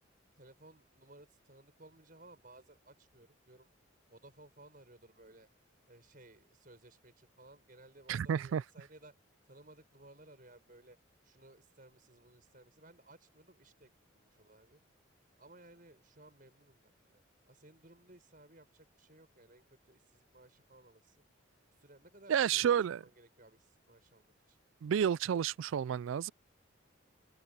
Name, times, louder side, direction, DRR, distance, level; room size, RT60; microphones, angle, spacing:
voice 1, 0.3-3.7 4.1-5.5 5.9-9.1 9.4-11.0 11.2-14.8 15.4-21.2 21.7-24.6, right 2 dB, 45° right, 6.1 m, -59 dB
voice 2, 8.1-8.6 22.3-23.0 24.8-26.3, right 8 dB, 75° right, 0.3 m, -30 dB
open air
head